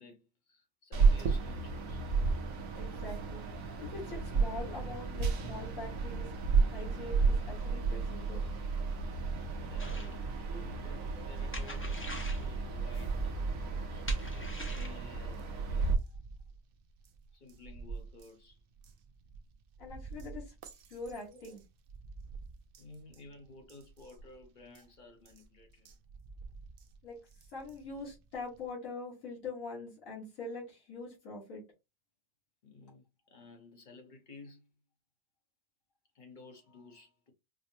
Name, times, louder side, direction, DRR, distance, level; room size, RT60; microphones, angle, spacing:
voice 1, 0.0-2.1 9.7-14.1 14.6-15.9 17.3-18.6 21.2-21.5 22.8-25.9 32.6-34.7 36.1-37.3, left 2 dB, 40° left, 0.8 m, -54 dB
sound 1, 0.9-15.9, right 4 dB, 85° right, 1.1 m, -32 dB
voice 2, 2.7-3.4 3.8-6.3 6.6-8.4 19.8-20.5 20.9-21.6 27.0-27.2 27.5-31.6, left 3 dB, 80° left, 1.8 m, -43 dB
sound 2, 9.8-10.1 11.5-12.5 14.1-15.0, right 1 dB, 20° left, 0.3 m, -39 dB
sound 3, 12.8-28.7, right 4 dB, 65° right, 0.5 m, -47 dB
5.0 x 2.0 x 2.7 m
omnidirectional pair, 1.4 m